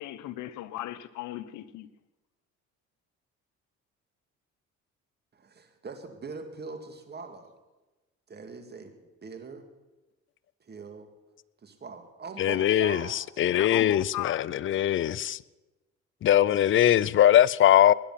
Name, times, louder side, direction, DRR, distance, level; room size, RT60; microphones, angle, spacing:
voice 1, 0.0-1.9 13.5-14.7, left 14 dB, 80° left, 0.9 m, -37 dB
voice 2, 5.3-7.5 8.3-9.7 10.6-11.1 11.6-13.5, right 4 dB, 35° right, 2.2 m, -42 dB
voice 3, 12.4-14.4 14.7-15.4 16.2-17.9, left 11 dB, 45° left, 0.5 m, -21 dB
20.5 x 10.0 x 5.8 m
cardioid pair, 95°, 29 cm